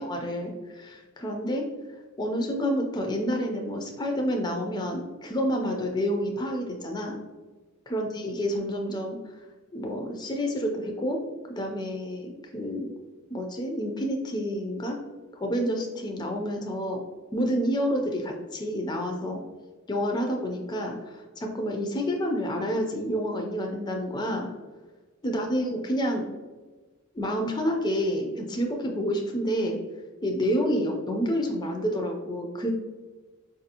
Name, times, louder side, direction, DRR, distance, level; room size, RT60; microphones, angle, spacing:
voice 1, 0.0-1.7 2.2-7.2 7.9-9.4 9.7-11.2 11.6-12.9 13.3-15.0 15.4-17.0 17.3-19.4 19.9-24.5 25.2-26.3 27.1-29.8 30.2-32.7, equal, 20° left, 2 dB, 0.4 m, -29 dB
4.5 x 2.5 x 2.7 m, 1.3 s
head